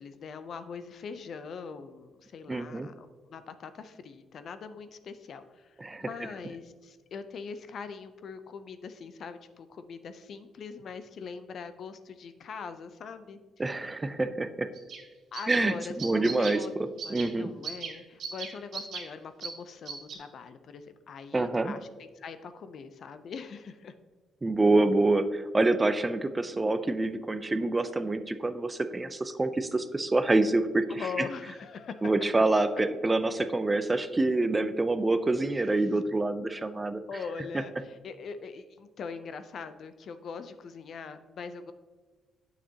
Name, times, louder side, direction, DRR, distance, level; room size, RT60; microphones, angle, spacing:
voice 1, 0.0-13.4 15.3-23.9 30.9-32.1 37.1-41.7, left 5 dB, 60° left, 11 dB, 0.5 m, -42 dB
voice 2, 2.5-2.9 5.8-6.1 13.6-14.7 15.5-16.6 17.1-17.5 21.3-21.7 24.4-31.3 32.0-37.0, right 2 dB, 20° right, 11 dB, 0.5 m, -26 dB
sound 1, 14.7-15.0 15.3-15.6 16.0-16.6 17.0-17.3 17.6-17.9 18.2-19.0 19.4-19.5 19.8-20.1, right 6 dB, 70° right, 2.1 m, -37 dB
9.1 x 6.7 x 2.9 m, 1.4 s
cardioid pair, 90°, 0 cm